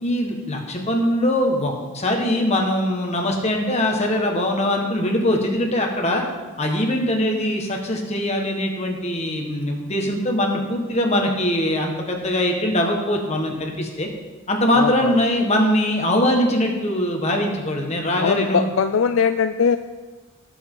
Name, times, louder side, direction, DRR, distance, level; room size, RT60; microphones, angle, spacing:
voice 1, 0.0-6.2 6.6-14.1 14.5-18.7, left 1 dB, 30° left, 1 dB, 1.6 m, -22 dB
voice 2, 14.7-15.2 18.2-19.8, left 6 dB, 65° left, 9 dB, 0.4 m, -20 dB
18.0 x 7.0 x 3.9 m, 1.3 s
head